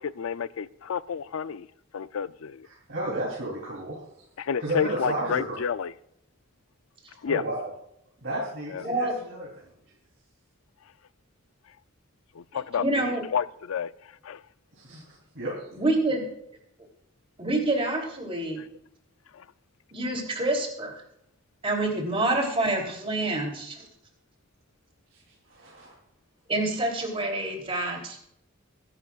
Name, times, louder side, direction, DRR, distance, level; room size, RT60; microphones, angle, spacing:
voice 1, 0.0-1.7 1.9-2.7 4.4-5.9 7.2-7.4 8.7-8.8 12.3-13.9 14.2-14.4 19.3-19.4, left 7 dB, 85° left, 0.4 m, -30 dB
voice 2, 2.6-4.0 4.6-5.4 7.2-7.6 8.2-9.7 14.7-15.7 25.1-25.2 25.5-26.0, right 1 dB, 70° right, 3.3 m, -33 dB
voice 3, 8.8-9.1 12.5-13.2 14.9-15.0 15.7-16.2 17.4-18.6 19.9-20.9 21.6-23.9 26.5-28.2, right 2 dB, 30° right, 3.1 m, -27 dB
22.0 x 11.0 x 2.4 m
head